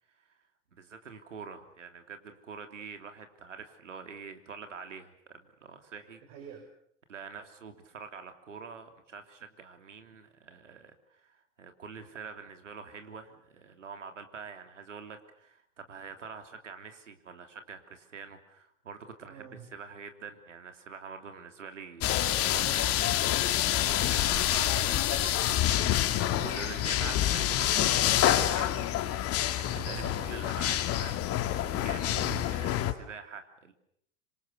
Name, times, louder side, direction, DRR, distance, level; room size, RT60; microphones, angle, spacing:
voice 1, 0.8-6.2 7.1-23.0 24.3-28.9 29.1-32.1 32.4-33.7, right 5 dB, 85° right, 7 dB, 3.3 m, -45 dB
voice 2, 6.3-6.7 19.3-19.6 23.9-24.3 29.6-30.2 32.1-32.4, right 9 dB, 55° right, 3 dB, 6.2 m, -44 dB
sound 1, 22.0-32.9, left 12 dB, 40° left, 2.2 m, -27 dB
26.5 x 26.5 x 6.9 m, 0.67 s
hypercardioid pair, 90°, 36 cm